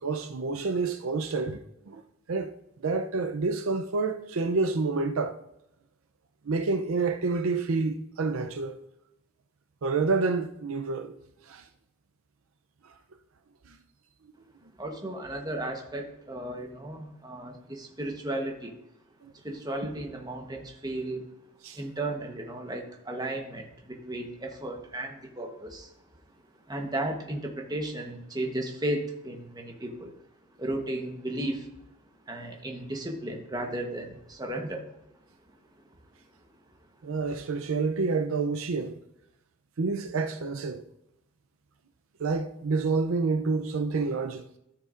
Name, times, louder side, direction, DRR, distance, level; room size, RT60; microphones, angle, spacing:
voice 1, 0.0-2.0 2.3-2.5 2.8-5.4 6.5-8.8 9.8-11.1 11.5-11.6 19.2-19.3 21.6-21.8 37.0-39.0 39.8-40.8 42.2-44.6, right 4 dB, 75° right, 0.5 m, -28 dB
voice 2, 14.8-18.8 19.3-21.3 21.7-25.9 26.7-30.1 30.5-31.7 32.2-34.9, right 1 dB, 20° right, 1.0 m, -34 dB
13.0 x 6.7 x 2.5 m
head